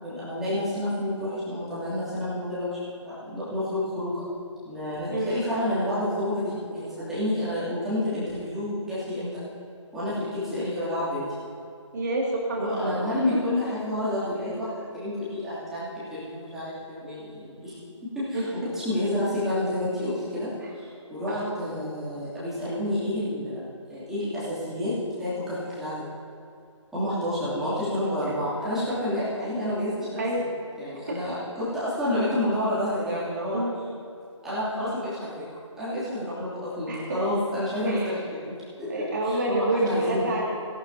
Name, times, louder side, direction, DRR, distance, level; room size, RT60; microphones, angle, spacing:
voice 1, 0.0-4.2 4.6-9.4 9.9-11.3 12.6-17.7 18.1-18.4 18.7-26.1 26.9-30.2 30.8-33.6 34.4-35.5 35.8-38.5 38.8-40.3, left 1 dB, ahead, -14 dB, 2.9 m, -29 dB
voice 2, 5.1-5.4 10.5-10.7 11.9-13.2 18.3-18.7 20.6-20.7 21.3-21.6 30.2-30.4 31.1-31.2 33.5-33.8 36.9-37.2 37.9-38.1 38.9-40.4, right 1 dB, 35° right, -2 dB, 2.5 m, -28 dB
18.0 x 11.5 x 2.9 m, 2.6 s
figure-of-eight pair, 150°, 16 cm